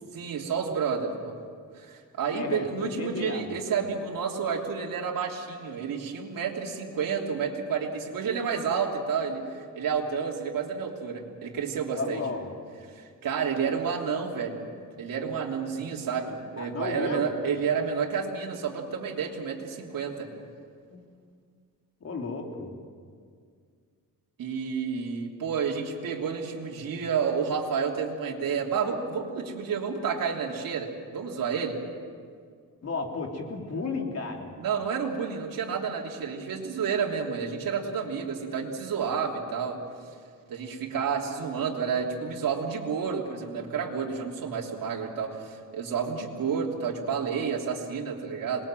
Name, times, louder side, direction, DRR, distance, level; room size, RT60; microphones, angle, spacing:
voice 1, 0.1-1.3 1.7-12.2 12.9-14.6 15.0-20.3 24.4-31.8 34.6-39.8 40.5-48.7, right 6 dB, 80° right, -1 dB, 3.2 m, -30 dB
voice 2, 2.3-3.5 11.9-12.5 16.6-17.3 20.9-21.0 22.0-22.7 32.8-34.5, left 4 dB, 50° left, 1 dB, 3.7 m, -33 dB
27.0 x 21.5 x 7.7 m, 2.1 s
cardioid pair, 120°, 33 cm